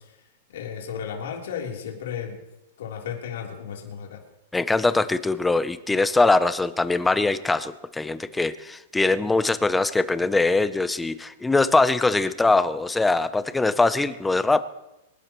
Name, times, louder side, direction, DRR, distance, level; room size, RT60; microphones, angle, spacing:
voice 1, 0.5-2.4 2.8-4.2, left 7 dB, 80° left, -1 dB, 3.4 m, -34 dB
voice 2, 4.5-14.7, left 3 dB, 5° left, 13 dB, 0.6 m, -22 dB
26.0 x 12.0 x 3.0 m, 0.95 s
supercardioid pair, 160°, 0 cm